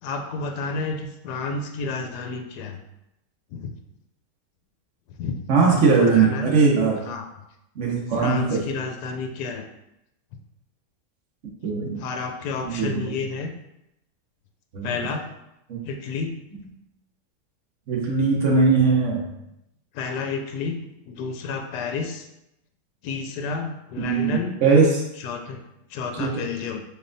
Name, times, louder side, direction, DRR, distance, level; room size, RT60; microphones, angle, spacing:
voice 1, 0.0-2.8 3.5-3.8 5.1-6.5 7.0-7.3 8.1-9.7 12.0-13.5 14.8-15.3 15.8-16.4 19.9-22.3 23.0-24.6 25.2-25.6 25.9-26.8, left 4 dB, 80° left, 4 dB, 1.1 m, -31 dB
voice 2, 5.5-7.0 7.8-8.6 11.6-12.0 12.7-13.1 14.7-14.9 15.7-15.8 17.9-19.3 24.0-24.9 26.2-26.3, right 4 dB, 50° right, -2 dB, 1.2 m, -20 dB
4.4 x 3.5 x 2.6 m, 0.86 s
omnidirectional pair, 1.7 m